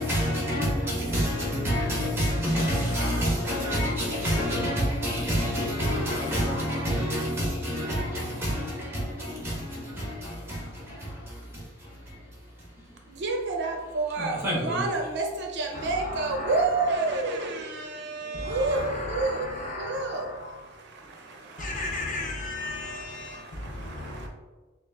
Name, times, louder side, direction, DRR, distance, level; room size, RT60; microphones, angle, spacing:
voice 1, 0.0-12.2 14.2-14.8, equal, 10° right, 1.1 m, -28 dB
voice 2, 13.1-22.0 22.7-24.3, right 3 dB, 60° right, 0.5 m, -30 dB
voice 3, 15.7-17.5 18.3-20.6 21.0-24.3, left 2 dB, 40° left, 0.5 m, -36 dB
6.1 x 2.4 x 2.2 m
head